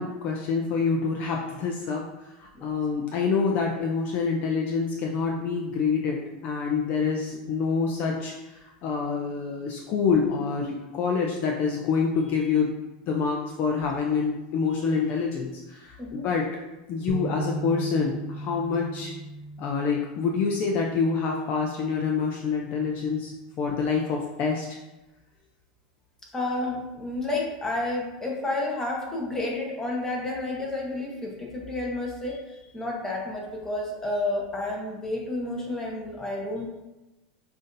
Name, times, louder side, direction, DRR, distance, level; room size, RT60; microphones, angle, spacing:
voice 1, 0.0-12.7 13.1-16.5 16.9-19.1 19.6-23.3 23.6-24.8, left 5 dB, 40° left, 1 dB, 0.4 m, -27 dB
sound 1, 17.1-23.3, right 3 dB, 35° right, 0.6 m, -38 dB
voice 2, 26.3-32.4 32.7-36.7, left 2 dB, 10° left, -2 dB, 0.8 m, -30 dB
5.5 x 2.5 x 2.6 m, 1.0 s
supercardioid pair, 145°, 4 cm